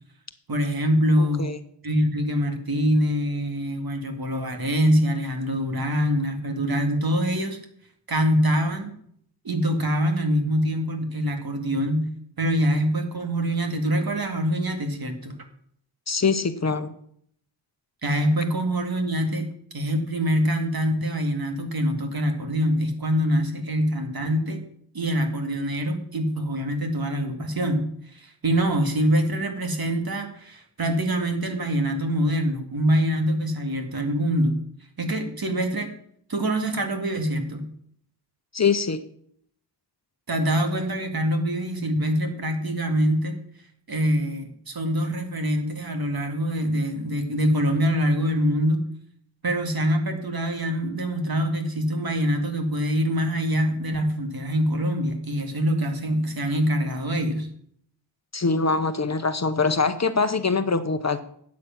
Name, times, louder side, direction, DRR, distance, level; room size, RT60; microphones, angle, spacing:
voice 1, 0.5-1.5 1.8-7.6 8.1-8.9 9.4-12.1 12.4-15.3 18.0-24.6 24.9-34.6 35.0-35.9 36.3-37.7 40.3-43.4 43.9-48.9 49.4-57.5, equal, 55° right, 5 dB, 2.3 m, -24 dB
voice 2, 1.2-1.6 16.1-16.9 38.5-39.0 58.3-61.2, left 4 dB, 40° left, 10 dB, 0.9 m, -23 dB
12.5 x 8.5 x 5.9 m, 0.65 s
wide cardioid pair, 95°, 43 cm